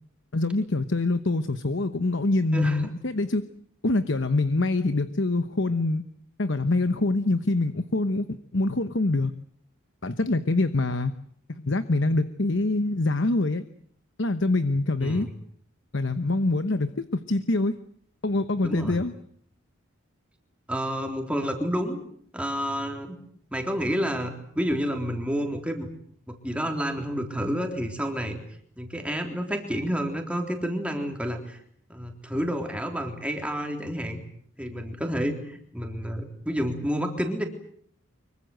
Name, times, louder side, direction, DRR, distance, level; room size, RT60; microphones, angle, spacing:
voice 1, 0.3-3.5 3.8-6.0 6.4-9.3 10.0-11.1 11.5-13.6 14.2-15.3 15.9-17.8 18.2-19.1, left 2 dB, 55° left, 11 dB, 1.0 m, -25 dB
voice 2, 2.5-2.9 15.0-15.3 18.6-19.0 20.7-22.0 22.3-23.2 23.5-25.9 26.3-28.4 28.8-31.6 31.9-34.2 34.6-37.4, equal, 5° right, 3 dB, 3.6 m, -29 dB
25.0 x 23.5 x 7.9 m, 0.64 s
head